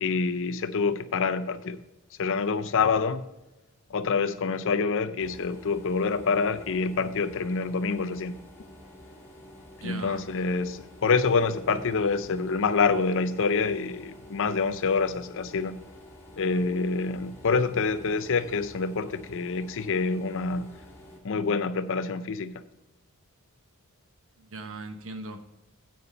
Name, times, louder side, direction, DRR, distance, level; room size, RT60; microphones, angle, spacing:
voice 1, 0.0-1.8 2.2-3.2 3.9-8.4 9.8-15.8 16.4-20.7 21.2-22.5, left 4 dB, 60° left, 0.6 m, -26 dB
sound 1, 5.2-21.2, left 1 dB, 10° left, 2.1 m, -49 dB
voice 2, 9.8-10.2 24.4-25.4, right 2 dB, 65° right, 1.0 m, -38 dB
8.8 x 6.8 x 5.2 m
head